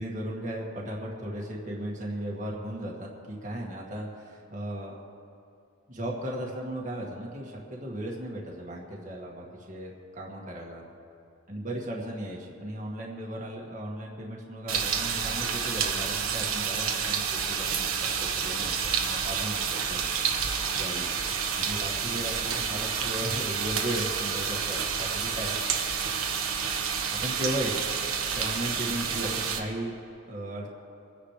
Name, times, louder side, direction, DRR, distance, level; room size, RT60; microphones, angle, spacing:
voice 1, 0.0-5.0 5.9-10.8 11.5-20.1 20.8-21.1 21.6-25.5 27.1-27.8 28.3-29.9 30.3-30.7, right 1 dB, 35° right, -3 dB, 2.0 m, -36 dB
sound 1, 14.7-29.6, right 6 dB, 80° right, 1.3 m, -29 dB
25.5 x 10.0 x 3.3 m, 2.7 s
head